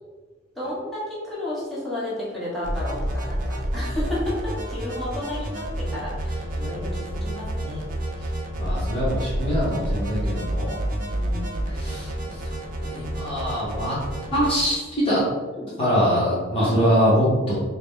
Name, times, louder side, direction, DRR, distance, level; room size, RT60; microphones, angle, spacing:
voice 1, 0.5-7.9 11.0-13.4 15.5-15.7 16.6-16.8, left 1 dB, ahead, -10 dB, 1.1 m, -33 dB
sound 1, 2.6-14.6, right 1 dB, 45° right, 0.5 m, -29 dB
voice 2, 8.6-10.7 11.7-12.4 12.8-14.0 14.3-15.2 15.8-17.5, equal, 30° left, -8 dB, 0.9 m, -23 dB
3.8 x 2.2 x 3.6 m, 1.3 s
head